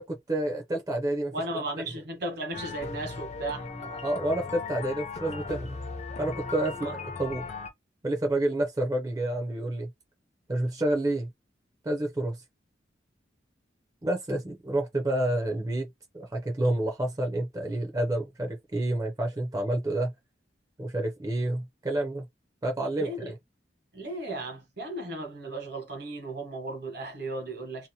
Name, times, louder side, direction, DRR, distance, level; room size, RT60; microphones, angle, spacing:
voice 1, 0.0-1.3 4.0-5.8 6.2-7.5 8.0-9.9 10.5-11.3 11.8-12.4 14.0-20.1 20.8-22.3 22.6-23.3, right 1 dB, 20° right, 0.5 m, -29 dB
voice 2, 1.3-4.0 6.8-6.9 23.0-23.3 23.9-27.9, right 2 dB, 65° right, 1.1 m, -36 dB
sound 1, 2.5-7.7, left 4 dB, 40° left, 0.6 m, -37 dB
2.7 x 2.0 x 2.7 m
head